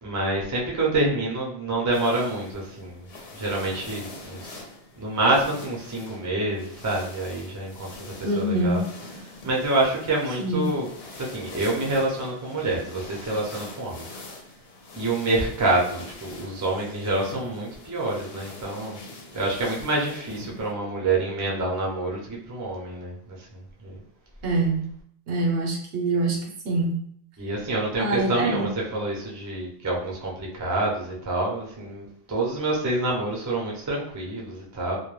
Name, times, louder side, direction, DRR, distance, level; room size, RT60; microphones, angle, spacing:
voice 1, 0.0-3.1 3.3-4.6 4.9-8.0 8.4-8.8 9.4-10.9 11.2-14.1 14.9-19.0 19.3-24.0 27.4-35.0, right 2 dB, 25° right, -2 dB, 0.4 m, -27 dB
sound 1, 1.9-20.7, left 2 dB, 75° left, 0.8 m, -44 dB
voice 2, 8.2-8.9 10.4-10.6 24.4-24.9 25.3-27.1 28.0-28.7, right 2 dB, 75° right, 0 dB, 0.9 m, -25 dB
2.2 x 2.1 x 3.1 m, 0.63 s
omnidirectional pair, 1.0 m